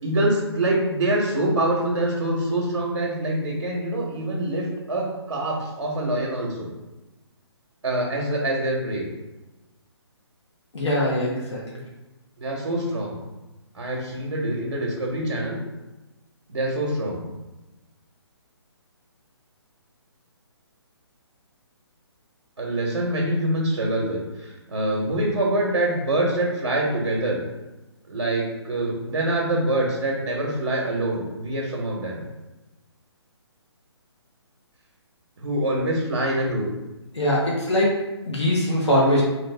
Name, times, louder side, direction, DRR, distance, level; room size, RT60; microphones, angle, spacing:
voice 1, 0.0-6.7 7.8-9.1 12.4-13.2 13.7-15.6 16.5-17.2 22.6-27.4 28.1-32.2 35.4-36.7, right 1 dB, 80° right, -3 dB, 0.9 m, -25 dB
voice 2, 10.7-11.6 37.1-37.9 38.3-39.2, left 1 dB, 85° left, -5 dB, 1.0 m, -21 dB
3.1 x 2.5 x 3.2 m, 1.1 s
hypercardioid pair, 150°, 14 cm